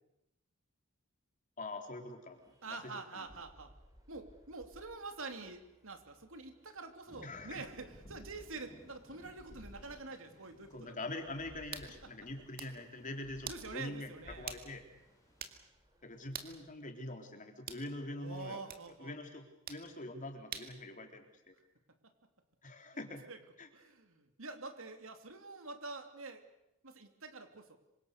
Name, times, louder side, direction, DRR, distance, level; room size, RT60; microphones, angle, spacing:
voice 1, 1.6-2.8 3.1-3.2 7.2-7.6 10.7-14.8 16.0-18.6 19.0-21.5 22.6-23.2 23.6-23.7, left 2 dB, 40° left, 4 dB, 3.6 m, -44 dB
sound 1, 2.3-16.9, equal, 15° right, 5.0 m, -61 dB
voice 2, 2.6-3.7 4.1-11.0 13.4-14.5 18.1-19.2 22.0-22.1 23.3-23.4 23.7-26.4 26.8-27.8, right 3 dB, 65° right, 7 dB, 2.9 m, -46 dB
sound 2, 7.1-15.6, equal, 15° left, 4.0 m, -62 dB
sound 3, 11.7-11.9 12.4-12.8 13.4-13.7 14.5-14.7 15.0-15.1 15.4-15.6 16.3-16.6 17.7-17.9 18.7-18.8 19.7-19.9 20.5-20.8, right 7 dB, 45° right, 2.2 m, -44 dB
26.5 x 25.0 x 6.7 m, 0.86 s
head